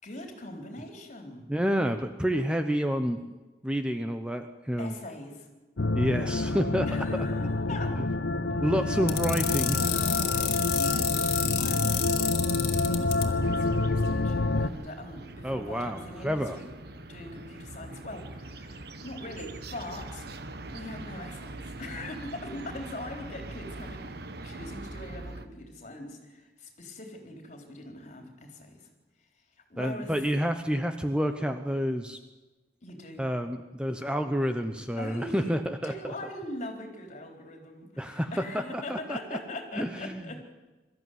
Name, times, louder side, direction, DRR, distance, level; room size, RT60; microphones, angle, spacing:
voice 1, 0.0-1.5 4.8-5.5 6.8-8.0 8.6-9.0 9.8-16.7 17.1-20.3 20.7-24.1 24.4-28.9 29.7-30.1 32.8-33.3 35.0-40.4, left 1 dB, 45° left, 4 dB, 4.0 m, -42 dB
voice 2, 1.5-3.2 3.6-4.9 5.9-6.9 8.6-9.8 15.4-16.6 29.8-32.2 33.2-36.1 38.0-39.2 39.7-40.2, equal, 5° right, 7 dB, 0.9 m, -29 dB
sound 1, 5.8-14.7, left 2 dB, 85° left, 0.9 m, -27 dB
sound 2, 9.1-13.2, left 11 dB, 60° left, 2.6 m, -29 dB
sound 3, 13.4-25.5, right 2 dB, 65° right, 1.3 m, -42 dB
22.5 x 14.0 x 9.4 m, 1.2 s
head